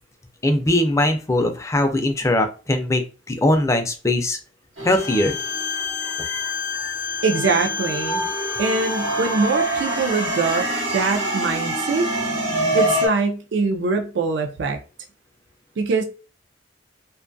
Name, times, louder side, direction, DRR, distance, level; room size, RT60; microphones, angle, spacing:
voice 1, 0.4-3.0 3.3-4.4 4.8-5.4 6.2-6.5 6.8-6.9, left 1 dB, 15° left, 0.4 m, -21 dB
sound 1, 4.8-6.7 7.2-13.1, right 1 dB, 85° right, 1.1 m, -26 dB
Bowed string instrument, 4.9-10.7, left 6 dB, 85° left, 0.4 m, -30 dB
voice 2, 7.2-8.3 8.6-12.1 12.7-14.8 15.8-16.0, right 4 dB, 65° right, 0.4 m, -23 dB
2.5 x 2.3 x 2.5 m
head